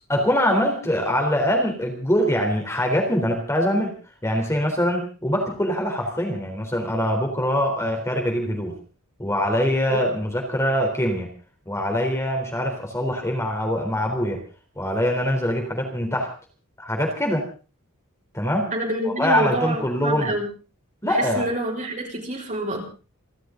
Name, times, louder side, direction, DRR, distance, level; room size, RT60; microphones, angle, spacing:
voice 1, 0.1-4.0 4.2-8.8 9.2-11.3 11.7-14.4 14.8-16.3 16.8-17.5 18.3-18.7 19.1-20.3 21.0-21.4, equal, 15° left, 2 dB, 3.8 m, -23 dB
voice 2, 18.7-20.5 21.0-22.8, right 1 dB, 35° right, 1 dB, 5.8 m, -27 dB
29.0 x 13.0 x 3.9 m, 0.36 s
head